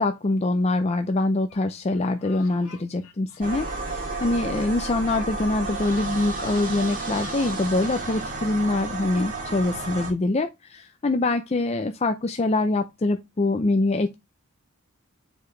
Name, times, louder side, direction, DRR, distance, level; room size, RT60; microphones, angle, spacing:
voice 1, 0.0-14.2, left 2 dB, 30° left, 0.5 m, -24 dB
sound 1, 1.5-1.6 1.9-7.6, left 5 dB, 80° left, 1.8 m, -49 dB
sound 2, 3.4-10.1, right 3 dB, 40° right, 2.0 m, -32 dB
6.9 x 5.0 x 3.2 m
head